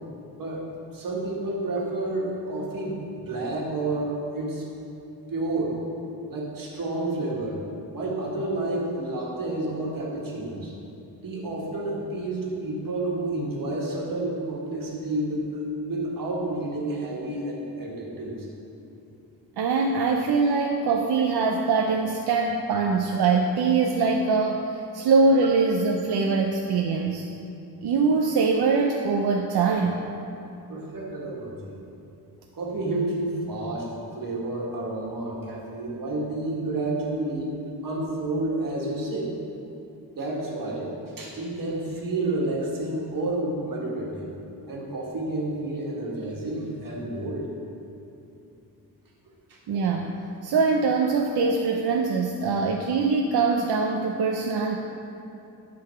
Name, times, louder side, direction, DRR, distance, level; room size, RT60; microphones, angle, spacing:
voice 1, 0.3-0.6 0.9-4.6 5.3-5.8 6.3-7.6 7.9-10.7 11.2-18.5 30.7-31.8 32.5-33.9 34.1-37.5 37.8-39.3 40.1-44.3 44.7-47.5 49.5-49.6, right 2 dB, 60° right, -3 dB, 1.7 m, -30 dB
voice 2, 19.6-27.2 27.8-30.1 49.7-50.1 50.4-54.8, right 4 dB, 85° right, 1 dB, 0.6 m, -23 dB
11.5 x 3.9 x 5.6 m, 2.8 s
wide cardioid pair, 160°, 38 cm